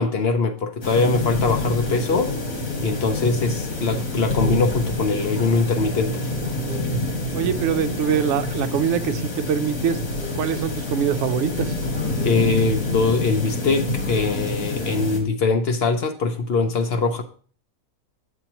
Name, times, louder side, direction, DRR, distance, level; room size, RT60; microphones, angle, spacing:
voice 1, 0.0-2.3 2.8-6.2 12.2-17.2, left 4 dB, 55° left, 7 dB, 0.8 m, -22 dB
sound 1, 0.8-15.2, left 2 dB, 75° left, 2.2 m, -27 dB
voice 2, 7.3-10.0 10.4-11.8, right 8 dB, 65° right, 12 dB, 0.8 m, -24 dB
8.2 x 8.0 x 2.9 m, 0.42 s
omnidirectional pair, 1.6 m